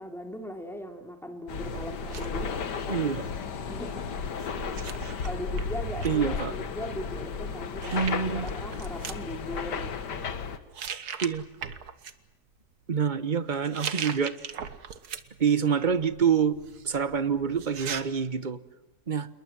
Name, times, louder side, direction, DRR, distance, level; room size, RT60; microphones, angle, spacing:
voice 1, 0.0-2.5 3.6-4.1 5.2-10.1, equal, ahead, 5 dB, 2.9 m, -39 dB
sound 1, 1.5-10.6, left 6 dB, 80° left, 2.1 m, -34 dB
sound 2, 1.6-3.4 4.4-6.4 7.5-7.6 7.8-9.2 10.0-10.3 10.7-12.1 13.5-15.5 15.9-18.0, right 7 dB, 65° right, 1.8 m, -39 dB
voice 2, 2.9-3.2 6.0-6.5 7.9-8.5 11.2-11.5 12.9-14.4 15.4-16.6 16.8-18.6 19.1-19.3, right 7 dB, 30° right, 14 dB, 1.0 m, -26 dB
27.5 x 22.0 x 7.5 m, 1.0 s
omnidirectional pair, 1.8 m